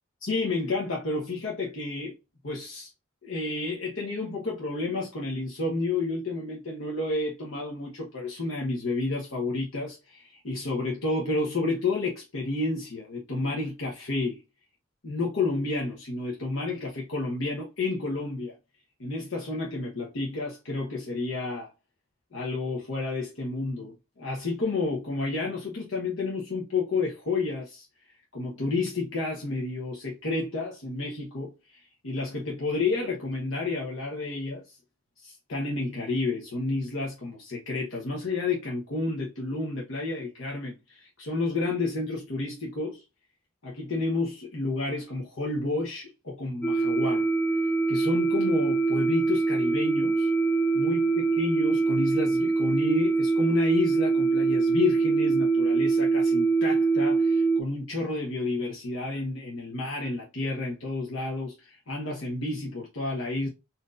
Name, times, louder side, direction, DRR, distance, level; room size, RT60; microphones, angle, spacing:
voice 1, 0.2-2.2 2.4-2.9 3.2-14.4 15.0-18.5 19.0-21.7 22.3-27.9 28.3-34.6 35.2-43.0 43.6-47.3 47.9-50.3 50.7-63.5, left 3 dB, 65° left, 1.0 m, -30 dB
sound 1, 46.6-57.6, right 4 dB, 5° left, 0.3 m, -24 dB
4.4 x 2.7 x 2.5 m
head